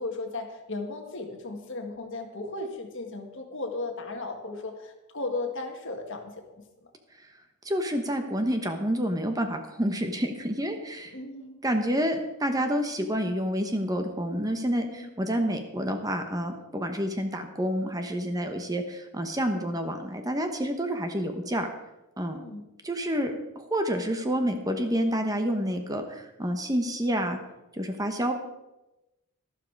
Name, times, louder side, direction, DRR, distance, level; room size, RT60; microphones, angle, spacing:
voice 1, 0.0-6.9 11.0-11.6 14.9-15.1 22.3-22.6, left 2 dB, 55° left, 4 dB, 1.7 m, -36 dB
voice 2, 7.6-11.1 11.6-21.7 22.2-22.4 22.8-27.4 27.7-28.3, equal, 15° right, 5 dB, 1.0 m, -28 dB
12.5 x 12.0 x 4.7 m, 0.97 s
head